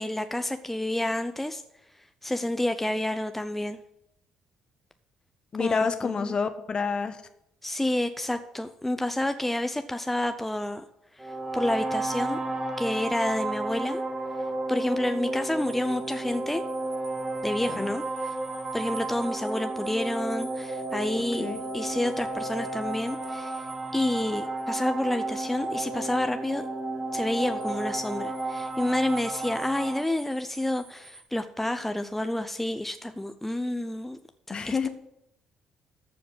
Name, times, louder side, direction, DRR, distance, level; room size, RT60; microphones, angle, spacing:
voice 1, 0.0-1.6 2.2-3.8 5.6-6.3 7.6-10.8 11.2-12.4 12.8-14.0 14.7-16.6 17.4-18.4 18.7-21.5 21.7-23.7 23.9-26.6 27.1-34.2 34.7-34.9, left 1 dB, 5° left, 8 dB, 0.7 m, -29 dB
voice 2, 5.5-7.2 17.6-17.9 21.4-21.6 34.5-34.9, left 5 dB, 40° left, 9 dB, 1.2 m, -28 dB
sound 1, 11.2-30.0, right 2 dB, 20° right, 2.5 m, -32 dB
sound 2, 15.4-24.7 27.2-31.2, right 3 dB, 80° right, 1.9 m, -50 dB
14.0 x 5.1 x 7.7 m, 0.82 s
figure-of-eight pair, 45°, 2 cm